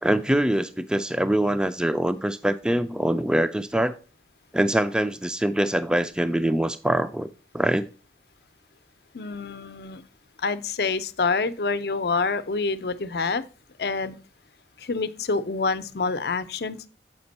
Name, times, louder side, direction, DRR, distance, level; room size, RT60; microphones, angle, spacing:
voice 1, 0.0-3.9 4.5-7.3 7.5-7.9, right 1 dB, 5° right, 0.3 m, -24 dB
voice 2, 9.1-10.0 10.4-13.4 13.8-14.2 14.8-16.9, left 4 dB, 65° left, 0.6 m, -27 dB
7.8 x 5.2 x 4.1 m
head